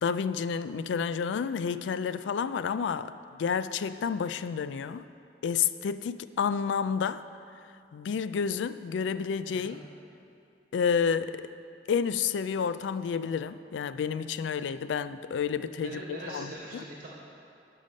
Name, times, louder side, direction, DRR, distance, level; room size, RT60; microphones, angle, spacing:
voice 1, 0.0-3.1 3.4-5.0 5.4-7.2 7.9-9.8 10.7-11.5 11.9-16.0 16.3-16.8, left 6 dB, 80° left, 14 dB, 0.3 m, -30 dB
voice 2, 9.5-9.8 15.7-17.1, right 1 dB, 55° right, -4 dB, 1.0 m, -42 dB
11.5 x 5.6 x 5.2 m, 2.6 s
head